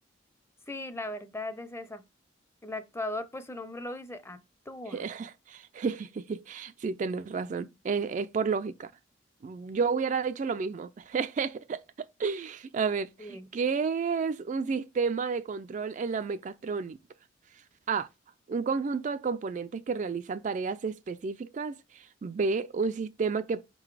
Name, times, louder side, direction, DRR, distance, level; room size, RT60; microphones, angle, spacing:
voice 1, 0.7-2.0 2.6-4.4 4.7-5.0 13.2-13.5, left 2 dB, 15° left, 0.6 m, -38 dB
voice 2, 4.9-8.9 9.4-11.8 12.2-17.0 17.9-18.1 18.5-23.6, right 5 dB, 40° right, 0.3 m, -31 dB
5.2 x 3.8 x 4.8 m
head